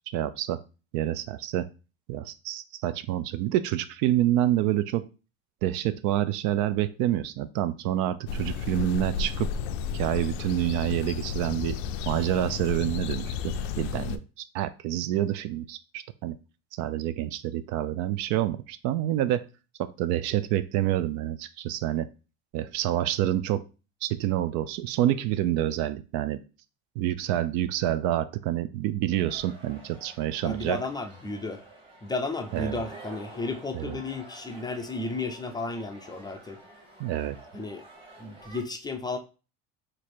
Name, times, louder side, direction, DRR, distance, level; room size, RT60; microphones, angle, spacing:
voice 1, 0.1-0.6 0.9-1.7 2.1-5.0 5.6-9.5 9.9-11.8 12.1-16.4 16.8-19.5 19.8-22.1 22.5-23.6 24.0-26.4 27.0-30.8 32.5-32.8 33.7-34.0 37.0-37.4, right 13 dB, 65° right, 14 dB, 0.4 m, -27 dB
sound 1, 8.3-14.2, left 6 dB, 75° left, 0.5 m, -32 dB
sound 2, 29.3-38.6, right 2 dB, 15° right, 1.2 m, -49 dB
voice 2, 30.4-31.6 32.0-36.6 37.5-37.9 38.2-39.2, left 3 dB, 15° left, 5 dB, 0.4 m, -33 dB
3.1 x 2.5 x 4.3 m, 0.33 s
supercardioid pair, 115°, 32 cm